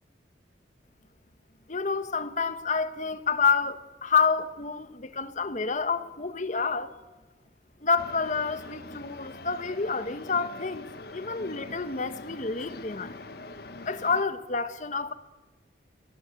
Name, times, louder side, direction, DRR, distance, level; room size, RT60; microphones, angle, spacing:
voice 1, 1.7-6.9 7.8-10.9 11.1-13.2 13.9-15.1, left 5 dB, 45° left, 1.2 m, -28 dB
sound 1, 8.0-14.2, left 2 dB, 60° left, 1.3 m, -44 dB
20.5 x 18.5 x 8.3 m
head